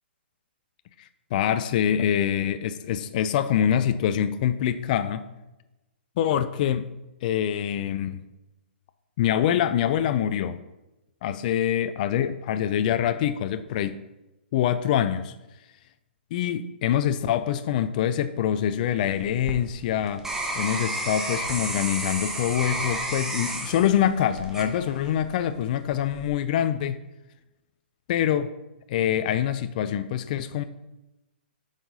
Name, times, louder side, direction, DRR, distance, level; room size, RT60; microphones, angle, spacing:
voice 1, 1.0-5.3 6.2-6.9 7.2-8.2 9.2-10.6 11.2-14.0 14.5-15.3 16.3-20.3 20.6-27.0 28.1-28.5 28.9-30.6, left 10 dB, 45° left, 11 dB, 0.4 m, -25 dB
sound 1, 19.1-25.3 25.8-26.3, right 1 dB, 5° right, 1.0 m, -32 dB
7.6 x 4.8 x 4.1 m, 0.99 s
hypercardioid pair, 135°, 6 cm